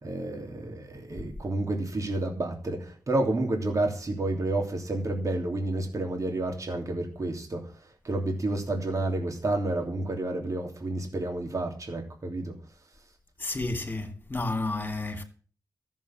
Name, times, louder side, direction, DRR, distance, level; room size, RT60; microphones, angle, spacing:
voice 1, 0.0-7.7 8.0-12.5, right 2 dB, 50° right, 3.0 m, -30 dB
voice 2, 13.4-15.2, left 2 dB, 25° left, 2.8 m, -31 dB
14.0 x 7.3 x 7.4 m
wide cardioid pair, 80°, 7 cm